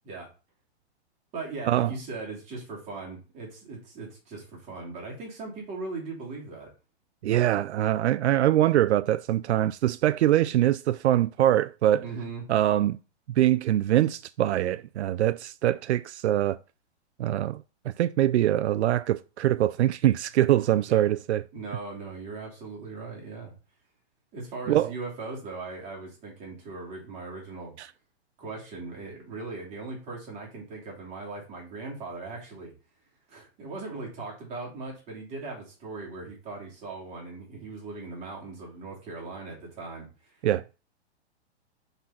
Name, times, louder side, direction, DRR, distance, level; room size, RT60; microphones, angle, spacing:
voice 1, 1.3-6.7 12.0-12.5 20.9-21.1 21.5-23.5 24.3-27.7 28.4-32.7 33.3-40.4, right 3 dB, 20° right, 2.8 m, -39 dB
voice 2, 7.2-12.0 12.5-13.0 13.4-16.6 17.2-17.6 18.0-21.4 24.7-24.9 27.8-27.9 40.4-40.6, right 13 dB, 80° right, 0.5 m, -23 dB
5.9 x 4.0 x 5.7 m
hypercardioid pair, 165°, 33 cm